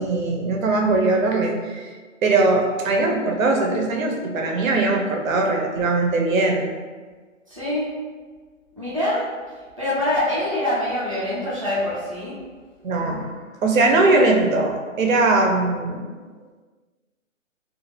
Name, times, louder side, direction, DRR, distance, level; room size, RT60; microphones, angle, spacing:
voice 1, 0.0-1.9 2.2-6.6 12.8-13.3 13.6-16.0, right 2 dB, 85° right, 1 dB, 0.7 m, -20 dB
voice 2, 7.5-7.9 8.8-9.2 9.8-12.4, left 1 dB, 25° right, -10 dB, 0.5 m, -24 dB
2.4 x 2.4 x 3.2 m, 1.5 s
hypercardioid pair, 175°, 39 cm